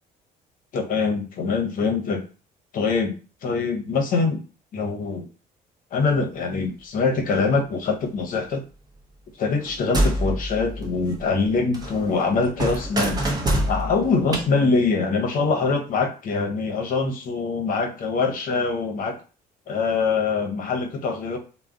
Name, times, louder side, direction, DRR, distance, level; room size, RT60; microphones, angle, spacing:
voice 1, 0.7-2.2 2.7-3.1 3.4-4.4 4.7-5.3 5.9-8.6 9.4-13.2 13.7-19.2 19.7-21.4, left 4 dB, 55° left, 3 dB, 0.7 m, -24 dB
sound 1, 9.6-11.5 11.7-14.4, right 1 dB, 25° right, 0.6 m, -26 dB
2.3 x 2.0 x 3.6 m, 0.36 s
cardioid pair, 110°, 17 cm